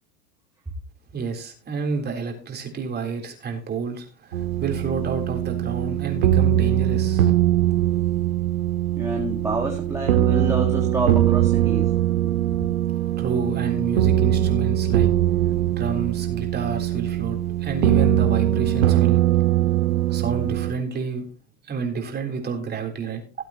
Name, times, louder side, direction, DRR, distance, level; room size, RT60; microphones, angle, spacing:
voice 1, 1.1-7.3 13.2-15.1 15.8-19.2 20.1-21.2 21.6-23.2, right 5 dB, 25° right, 3.7 m, -29 dB
sound 1, 4.3-20.7, right 12 dB, 80° right, 1.8 m, -21 dB
voice 2, 9.0-11.9, right 2 dB, 5° right, 1.7 m, -28 dB
18.0 x 8.3 x 3.0 m
hypercardioid pair, 120°, 42 cm